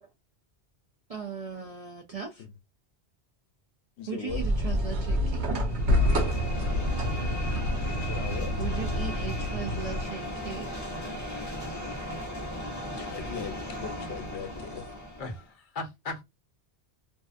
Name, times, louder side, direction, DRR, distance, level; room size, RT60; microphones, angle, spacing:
voice 1, 1.1-2.4 4.1-5.5 8.6-11.0, right 6 dB, 50° right, 0.5 m, -38 dB
voice 2, 4.0-4.4 8.1-8.5 13.0-14.8, left 7 dB, 85° left, 0.9 m, -39 dB
sound 1, 4.3-10.0, left 1 dB, 80° right, 1.1 m, -28 dB
sound 2, 5.6-15.5, left 1 dB, 20° left, 0.6 m, -37 dB
voice 3, 15.2-16.2, left 3 dB, 50° left, 0.8 m, -37 dB
2.7 x 2.3 x 2.4 m
omnidirectional pair, 1.1 m